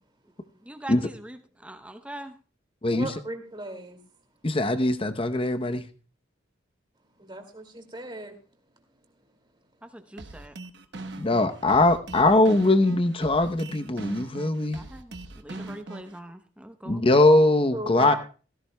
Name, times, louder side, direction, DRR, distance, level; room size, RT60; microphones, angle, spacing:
voice 1, 0.6-2.4 9.8-10.5 14.7-17.0, right 1 dB, 5° right, 0.8 m, -42 dB
voice 2, 2.9-4.0 7.2-8.3 17.7-18.2, right 2 dB, 25° right, 2.3 m, -37 dB
voice 3, 4.4-5.8 11.2-14.8 16.8-18.1, left 2 dB, 25° left, 0.8 m, -21 dB
sound 1, 10.2-16.2, right 2 dB, 55° right, 1.1 m, -41 dB
16.5 x 16.0 x 2.2 m
head